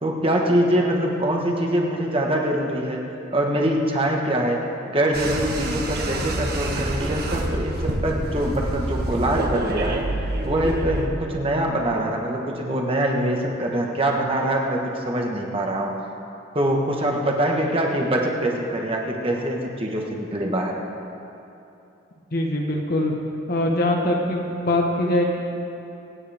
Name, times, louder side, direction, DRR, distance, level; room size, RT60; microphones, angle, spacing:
voice 1, 0.0-3.0 3.3-10.1 10.4-16.0 16.5-20.8, right 1 dB, 25° right, 0 dB, 1.5 m, -24 dB
sound 1, 5.1-11.1, right 1 dB, 50° right, 1.2 m, -27 dB
voice 2, 22.3-23.1 23.5-25.4, left 1 dB, 50° left, 0 dB, 1.3 m, -22 dB
24.5 x 9.4 x 3.6 m, 2.8 s
head